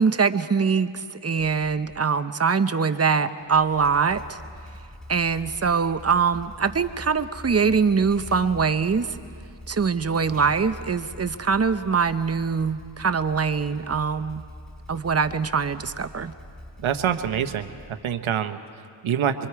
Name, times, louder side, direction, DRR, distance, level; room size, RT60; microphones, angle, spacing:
voice 1, 0.0-4.4 5.1-9.2 9.7-14.4 14.9-16.3, right 5 dB, 30° right, 11 dB, 0.8 m, -23 dB
Motorcycle / Engine starting, 1.4-2.0 3.4-18.3, left 1 dB, ahead, 2.1 m, -44 dB
voice 2, 16.8-19.5, right 8 dB, 75° right, 8 dB, 1.1 m, -26 dB
24.0 x 24.0 x 4.8 m, 2.2 s
cardioid pair, 80°, 49 cm